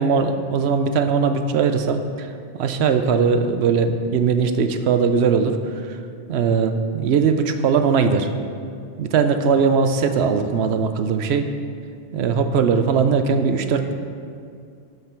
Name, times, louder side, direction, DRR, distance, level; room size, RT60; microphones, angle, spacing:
voice 1, 0.0-2.3 2.6-5.6 5.8-6.0 6.3-8.3 9.0-11.5 12.1-13.9, right 5 dB, 90° right, 8 dB, 0.9 m, -20 dB
12.0 x 5.4 x 4.5 m, 2.3 s
omnidirectional pair, 1.1 m